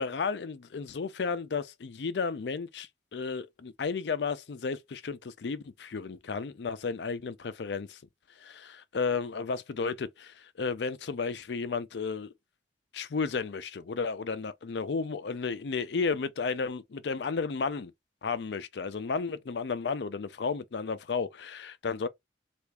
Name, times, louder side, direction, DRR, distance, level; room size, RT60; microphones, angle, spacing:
voice 1, 0.0-8.0 8.4-12.3 12.9-17.9 18.2-22.1, left 5 dB, 80° left, 0.5 m, -33 dB
3.4 x 2.5 x 3.2 m
head